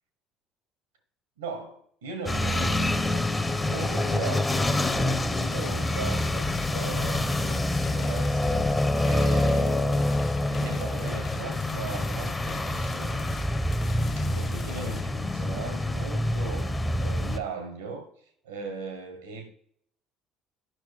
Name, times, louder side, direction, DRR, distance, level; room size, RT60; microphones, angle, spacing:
voice 1, 1.4-3.3 3.6-8.6 9.0-10.1 10.4-13.3 14.2-16.7 17.0-18.1 18.4-19.5, right 4 dB, 75° right, 1.3 m, -38 dB
sound 1, 2.3-17.4, left 1 dB, 15° left, 0.8 m, -26 dB
sound 2, 5.3-15.0, left 5 dB, 45° left, 1.3 m, -42 dB
10.0 x 6.0 x 3.4 m
figure-of-eight pair, 55°, 0 cm